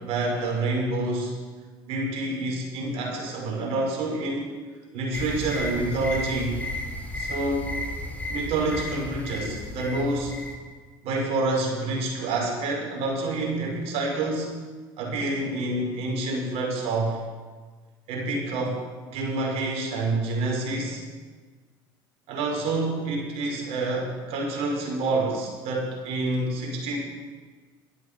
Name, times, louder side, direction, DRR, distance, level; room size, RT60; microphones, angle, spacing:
voice 1, 0.0-1.3 1.9-4.5 4.9-6.7 7.2-7.7 8.3-10.4 11.0-14.5 15.0-17.2 18.1-18.8 19.1-21.0 22.3-27.0, right 2 dB, 60° right, -1 dB, 5.5 m, -28 dB
sound 1, 5.1-10.6, left 1 dB, 15° left, 4.1 m, -34 dB
13.5 x 10.5 x 8.3 m, 1.4 s
hypercardioid pair, 70°, 12 cm